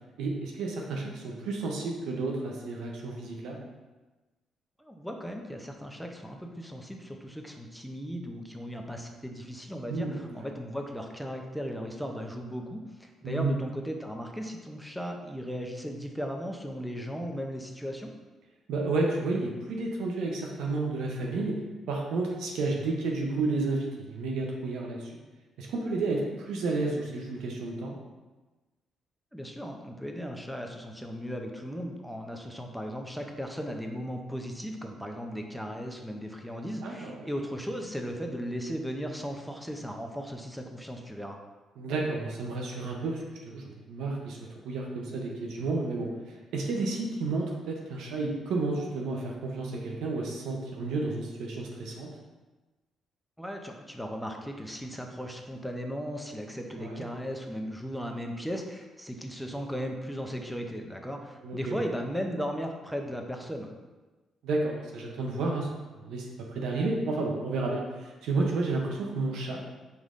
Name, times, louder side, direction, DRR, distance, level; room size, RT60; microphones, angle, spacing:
voice 1, 0.2-3.6 9.9-10.5 13.2-13.5 18.7-21.6 21.9-25.1 25.6-28.0 36.8-37.3 41.8-44.4 44.6-52.1 56.8-57.0 61.4-61.8 64.4-65.7 66.0-66.3 66.5-69.6, right 3 dB, 85° right, 0 dB, 0.6 m, -31 dB
voice 2, 4.8-18.1 29.3-41.4 53.4-63.7, equal, ahead, 2 dB, 0.5 m, -36 dB
5.3 x 3.1 x 2.5 m, 1.2 s
cardioid pair, 90°, 0 cm